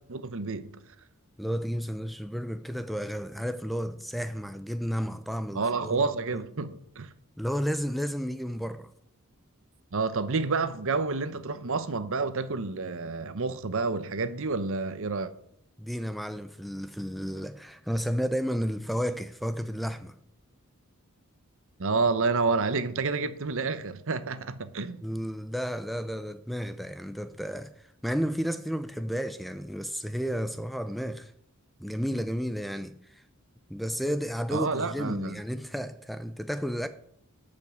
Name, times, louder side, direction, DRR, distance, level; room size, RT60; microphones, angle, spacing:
voice 1, 0.1-0.8 5.5-7.1 9.9-15.3 21.8-25.0 34.5-35.4, right 4 dB, 60° right, 0.8 m, -29 dB
voice 2, 1.4-6.1 7.4-8.9 15.8-20.1 25.0-31.3 31.8-33.2 33.7-36.9, equal, ahead, 0.4 m, -32 dB
12.0 x 5.4 x 7.8 m
head